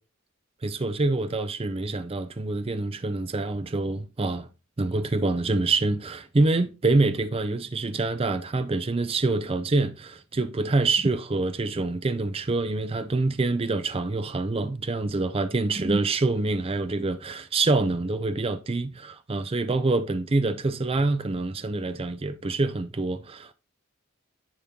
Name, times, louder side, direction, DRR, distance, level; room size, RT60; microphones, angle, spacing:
voice 1, 0.6-4.5 4.8-23.5, right 3 dB, 25° right, 0.5 m, -26 dB
10.0 x 4.4 x 3.6 m
head